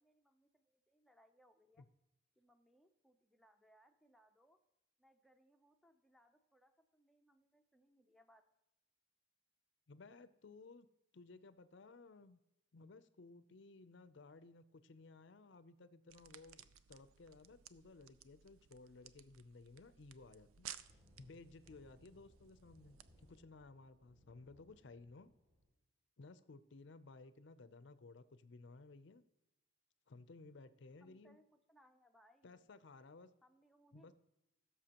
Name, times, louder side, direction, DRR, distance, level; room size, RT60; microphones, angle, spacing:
voice 1, 0.0-1.8 2.4-4.6 5.0-8.4 31.0-32.7 33.4-34.1, equal, ahead, 5 dB, 0.5 m, -70 dB
voice 2, 9.9-10.9 11.1-12.4 12.7-25.3 26.2-29.2 30.1-31.4 32.4-33.3 33.9-34.1, left 3 dB, 60° left, 14 dB, 0.5 m, -58 dB
sound 1, 16.1-23.4, right 10 dB, 85° right, 0.4 m, -58 dB
sound 2, 19.1-19.2 19.4-25.6, equal, 40° right, 3.8 m, -69 dB
16.0 x 6.8 x 2.9 m, 0.91 s
head